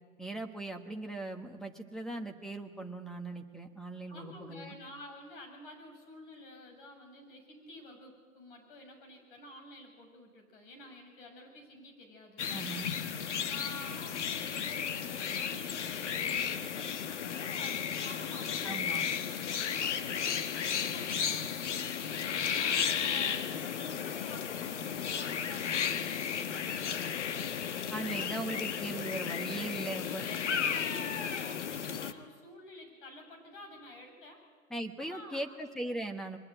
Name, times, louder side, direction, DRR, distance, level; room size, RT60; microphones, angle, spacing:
voice 1, 0.2-4.7 12.5-12.9 18.6-19.1 27.9-30.2 34.7-36.4, right 2 dB, ahead, 5 dB, 1.3 m, -39 dB
voice 2, 4.1-12.4 13.5-19.0 19.8-22.0 22.5-27.4 28.1-28.7 30.2-34.4 35.0-35.6, left 1 dB, 40° left, 3 dB, 7.4 m, -50 dB
sound 1, 12.4-32.1, left 7 dB, 60° left, 1.5 m, -34 dB
23.0 x 21.5 x 9.1 m, 1.5 s
hypercardioid pair, 135°, 41 cm